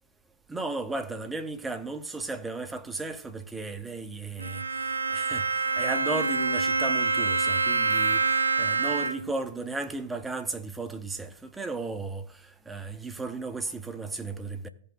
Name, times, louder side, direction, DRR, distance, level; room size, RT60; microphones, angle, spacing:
voice 1, 0.5-14.7, right 3 dB, 10° right, 0.7 m, -35 dB
Bowed string instrument, 4.4-9.4, right 4 dB, 85° right, 0.5 m, -26 dB
16.0 x 5.5 x 2.3 m
figure-of-eight pair, 115°, 0 cm